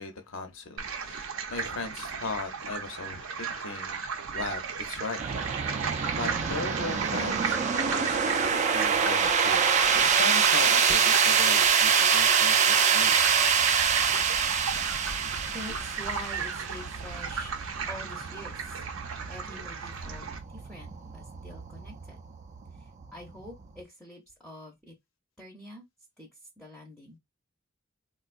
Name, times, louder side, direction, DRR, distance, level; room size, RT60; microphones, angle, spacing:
voice 1, 0.0-4.0 4.3-4.6 4.9-5.2 5.7-5.8 6.1-9.6 10.0-13.2, left 3 dB, 75° left, 0.7 m, -37 dB
sound 1, 0.8-20.4, right 5 dB, 90° right, 0.7 m, -35 dB
sound 2, 5.2-23.8, right 6 dB, 35° right, 0.4 m, -26 dB
voice 2, 15.2-17.5 17.9-18.8 19.3-20.2 20.5-22.2 22.7-24.9 25.4-25.9 26.2-27.2, left 1 dB, 5° left, 0.6 m, -45 dB
3.8 x 2.3 x 2.5 m
head